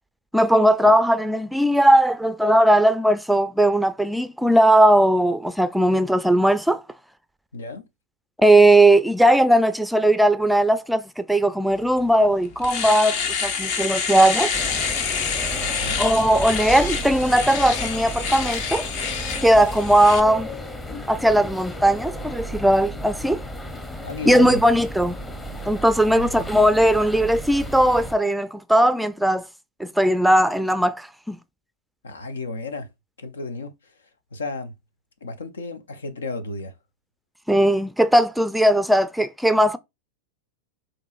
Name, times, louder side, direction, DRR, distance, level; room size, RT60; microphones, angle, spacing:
voice 1, 0.3-6.8 8.4-14.5 16.0-18.9 19.4-20.5 21.1-23.4 24.3-25.2 25.7-29.4 29.8-31.4 37.5-39.8, right 1 dB, ahead, 0.4 m, -18 dB
voice 2, 7.5-7.9 15.5-16.1 24.0-24.6 26.2-26.6 32.0-32.9 33.2-34.7 35.2-36.7, left 3 dB, 90° left, 0.7 m, -34 dB
Domestic sounds home sounds, 12.0-12.1 12.5-20.2, left 6 dB, 55° left, 1.0 m, -27 dB
sound 1, 14.5-28.2, equal, 15° left, 0.8 m, -34 dB
5.2 x 2.9 x 2.5 m
hypercardioid pair, 110°, 0 cm